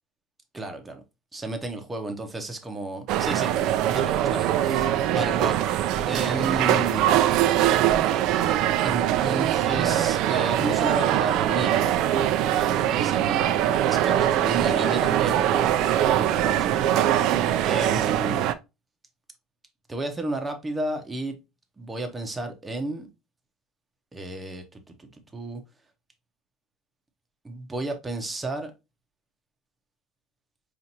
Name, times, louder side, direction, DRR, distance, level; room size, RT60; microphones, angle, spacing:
voice 1, 0.5-1.0 1.3-3.5 3.9-5.6 6.1-7.1 8.8-18.5 19.9-21.4 21.8-23.1 24.1-25.6 27.4-28.7, right 2 dB, 15° right, 0.7 m, -32 dB
sound 1, 3.1-18.5, right 12 dB, 60° right, 0.4 m, -22 dB
5.4 x 2.5 x 2.9 m
cardioid pair, 135°, 0 cm